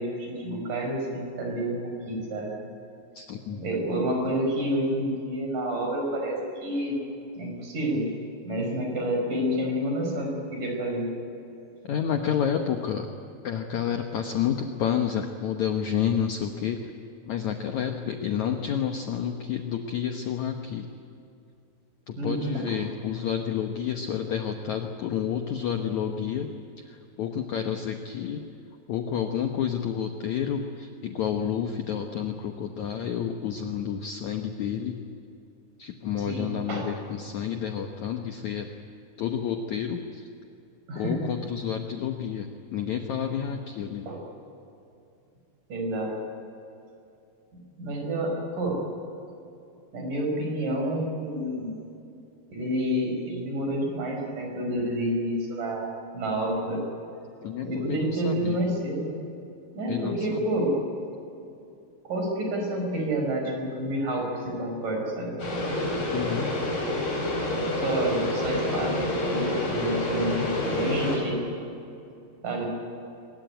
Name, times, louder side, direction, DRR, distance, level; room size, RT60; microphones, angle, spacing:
voice 1, 0.0-2.5 3.5-7.0 7.4-8.1 8.4-11.1 22.2-22.7 36.3-36.9 40.9-41.3 44.1-44.2 45.7-46.1 47.8-48.8 49.9-51.8 52.5-55.9 56.1-56.8 57.6-59.1 59.7-60.7 62.0-65.4 67.7-71.4 72.4-72.7, right 1 dB, 55° right, 1 dB, 6.4 m, -29 dB
voice 2, 3.2-3.6 11.8-13.1 13.4-16.9 17.3-20.9 22.1-26.5 26.8-28.4 28.9-35.0 35.8-38.7 39.2-40.3 40.9-44.1 57.4-58.6 59.9-60.5 66.1-66.5, left 8 dB, 70° left, 4 dB, 1.8 m, -30 dB
sound 1, 65.4-71.2, left 1 dB, 50° left, 6.3 m, -28 dB
23.0 x 21.5 x 9.3 m, 2.6 s
omnidirectional pair, 4.7 m